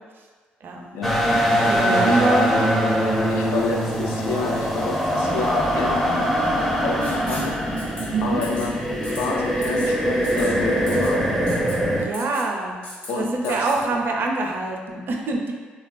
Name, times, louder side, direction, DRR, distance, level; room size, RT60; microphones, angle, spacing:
voice 1, 0.6-1.0 1.7-2.6 8.1-8.4 12.0-12.8 13.2-15.5, right 3 dB, 55° right, 1 dB, 0.4 m, -25 dB
sound 1, 1.0-12.1, equal, 5° left, 0.4 m, -22 dB
voice 2, 2.0-2.4 3.3-6.3 6.8-7.6 8.2-8.7 9.0-11.3 13.1-13.7, left 4 dB, 70° left, 1 dB, 0.4 m, -28 dB
Writing, 7.0-7.5 7.8-8.0 8.4-8.7 9.0-9.3 9.6-9.9 10.2-10.5 10.9-11.1 11.5-11.8 12.1-12.5 12.8-13.1 13.4-13.8, left 1 dB, 40° left, 0.9 m, -38 dB
3.1 x 2.2 x 2.4 m, 1.5 s
hypercardioid pair, 55°, 4 cm